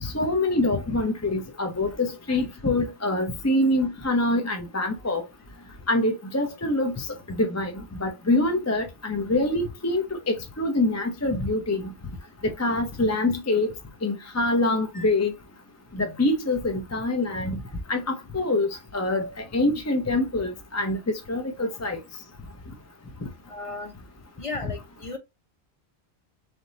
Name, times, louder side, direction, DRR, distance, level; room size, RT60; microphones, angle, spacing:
voice 1, 0.0-5.2 5.9-7.1 7.4-7.7 8.0-11.9 12.6-13.7 14.0-15.3 16.0-17.6 17.9-21.0 21.3-22.0, left 2 dB, 20° left, 0.6 m, -25 dB
voice 2, 23.5-23.9 24.4-25.2, left 3 dB, 35° left, 0.9 m, -35 dB
4.0 x 3.4 x 2.8 m
omnidirectional pair, 1.1 m